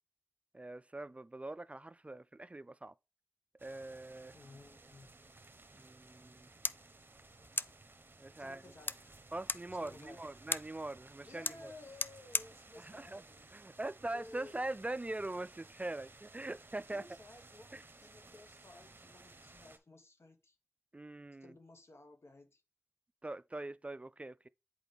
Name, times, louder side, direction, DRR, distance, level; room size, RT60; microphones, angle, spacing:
voice 1, 0.5-2.9 3.6-4.3 5.7-6.5 8.2-8.6 9.3-11.7 12.8-13.2 13.5-17.0 17.7-17.8 20.9-21.5 23.2-24.4, right 2 dB, 30° right, 0.3 m, -42 dB
sound 1, 3.6-19.8, right 3 dB, 45° right, 1.0 m, -58 dB
voice 2, 4.3-5.1 8.4-9.3 9.7-10.3 11.2-13.5 14.1-14.6 16.9-20.6 21.4-22.6, left 2 dB, 65° left, 1.3 m, -56 dB
sound 2, 6.2-14.2, left 3 dB, 45° left, 0.4 m, -43 dB
8.0 x 4.4 x 3.3 m
wide cardioid pair, 60°, 5 cm